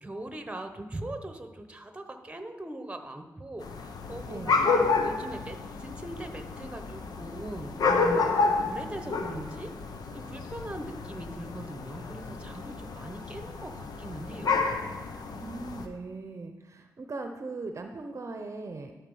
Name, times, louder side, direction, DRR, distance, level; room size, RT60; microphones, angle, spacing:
voice 1, 0.0-8.3 8.6-9.7 10.1-14.5, right 1 dB, 15° right, 7 dB, 1.1 m, -40 dB
sound 1, 3.6-15.9, left 4 dB, 80° left, 0.8 m, -30 dB
voice 2, 4.3-4.7 15.3-19.0, right 3 dB, 45° right, 5 dB, 0.7 m, -39 dB
12.0 x 4.7 x 5.6 m, 1.3 s
cardioid pair, 70°, 7 cm